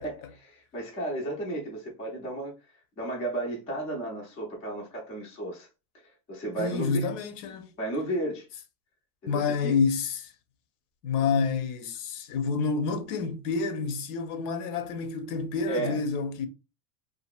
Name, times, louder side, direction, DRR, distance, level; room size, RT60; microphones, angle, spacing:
voice 1, 0.0-2.5 3.0-5.7 6.3-7.0 7.8-8.5 9.2-9.7 15.7-16.0, right 2 dB, 15° left, 0.3 m, -33 dB
voice 2, 6.6-7.7 9.2-10.3 11.0-16.5, left 5 dB, 70° left, 0.6 m, -28 dB
2.8 x 2.5 x 2.2 m
supercardioid pair, 155°, 48 cm